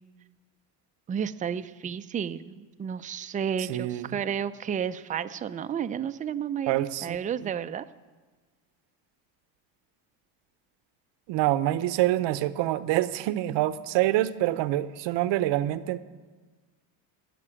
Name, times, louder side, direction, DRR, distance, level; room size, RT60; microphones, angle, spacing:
voice 1, 1.1-7.8, right 8 dB, 20° right, 11 dB, 0.3 m, -32 dB
voice 2, 3.7-4.1 6.7-7.2 11.3-16.0, right 15 dB, 80° right, 14 dB, 0.8 m, -26 dB
15.0 x 6.7 x 9.9 m, 1.4 s
cardioid pair, 125°, 43 cm